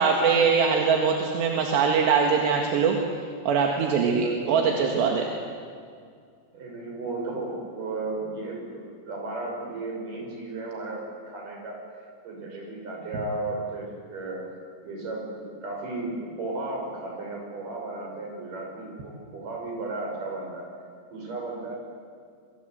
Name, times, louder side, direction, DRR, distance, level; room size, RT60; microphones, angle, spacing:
voice 1, 0.0-3.0 3.5-5.3, right 5 dB, 80° right, 1 dB, 4.0 m, -22 dB
voice 2, 4.1-4.6 6.5-11.8 12.2-14.5 14.8-20.7 21.1-21.8, right 2 dB, 50° right, 0 dB, 7.7 m, -34 dB
25.5 x 25.0 x 8.1 m, 2.2 s
omnidirectional pair, 4.9 m